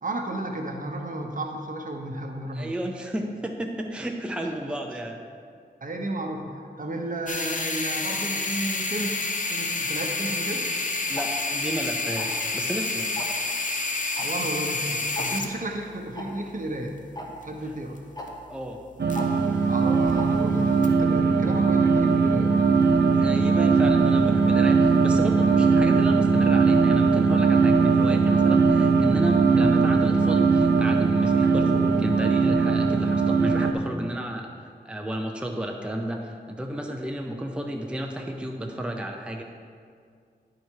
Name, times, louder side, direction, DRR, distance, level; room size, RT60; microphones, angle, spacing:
voice 1, 0.0-2.7 5.8-10.7 14.2-17.0 17.4-18.0 19.6-22.5, right 1 dB, 50° right, 2 dB, 0.9 m, -33 dB
voice 2, 2.5-5.2 11.1-13.0 17.6-17.7 18.5-18.8 23.1-39.4, right 1 dB, 5° right, 2 dB, 0.6 m, -32 dB
sound 1, 7.3-19.6 19.9-20.1 20.8-20.9, left 3 dB, 45° left, 0.7 m, -30 dB
Tick-tock, 11.2-11.3 12.2-12.4 13.2-13.4 14.2-14.3 14.5-14.6 15.2-15.3 16.2-16.3 17.2-17.3 18.2-18.3 19.2-19.3 20.2-20.3, left 1 dB, 20° left, 1.0 m, -35 dB
sound 2, 19.0-33.7, right 4 dB, 70° right, 0.6 m, -20 dB
10.5 x 4.8 x 4.5 m, 2.2 s
wide cardioid pair, 70°, 18 cm